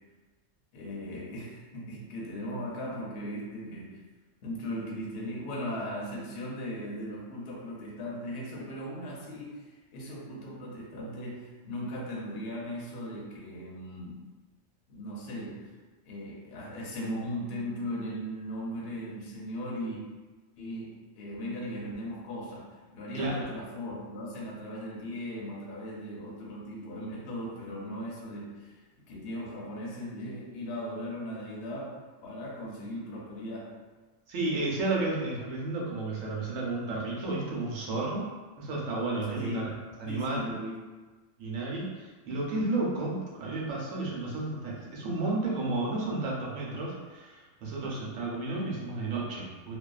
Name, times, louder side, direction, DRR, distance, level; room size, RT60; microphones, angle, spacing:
voice 1, 0.7-4.0 4.4-14.2 14.9-15.7 16.0-20.0 20.6-28.8 29.1-33.8 39.4-39.8 40.0-40.8, equal, 60° left, -3 dB, 0.7 m, -38 dB
voice 2, 34.3-38.3 38.6-39.6 40.0-40.4 41.4-49.8, right 2 dB, 75° right, -4 dB, 1.1 m, -32 dB
2.5 x 2.3 x 2.3 m, 1.3 s
omnidirectional pair, 1.4 m